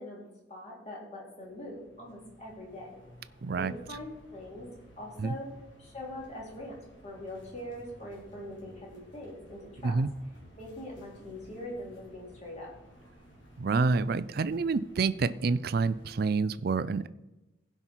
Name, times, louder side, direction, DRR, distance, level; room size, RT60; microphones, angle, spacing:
voice 1, 0.0-2.9 3.6-4.7 5.0-5.5 5.8-6.7 7.0-10.0 10.6-12.7, left 1 dB, 35° left, -3 dB, 3.4 m, -42 dB
sound 1, 1.4-16.1, equal, 75° left, 2.6 m, -55 dB
voice 2, 3.4-3.7 5.2-5.3 9.8-10.1 13.6-17.1, right 4 dB, 55° right, 15 dB, 0.4 m, -28 dB
16.0 x 5.7 x 4.5 m, 0.99 s
head